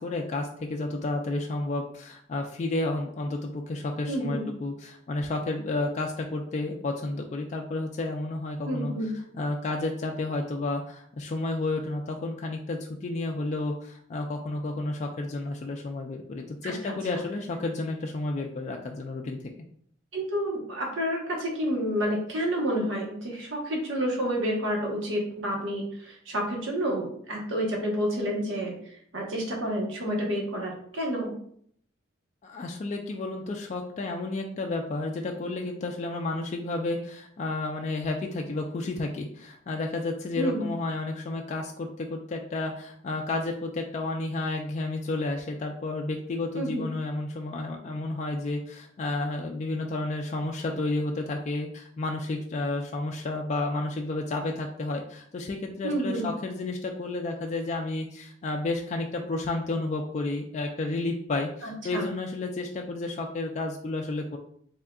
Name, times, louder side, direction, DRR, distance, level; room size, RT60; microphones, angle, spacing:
voice 1, 0.0-19.6 32.4-64.4, left 2 dB, 35° left, 1 dB, 0.3 m, -31 dB
voice 2, 4.1-4.4 8.6-9.1 16.6-17.2 20.1-28.7 29.1-31.3 40.4-40.7 46.5-46.8 55.8-56.3 61.6-62.1, equal, 85° right, -1 dB, 1.0 m, -29 dB
3.6 x 3.5 x 2.3 m, 0.64 s
head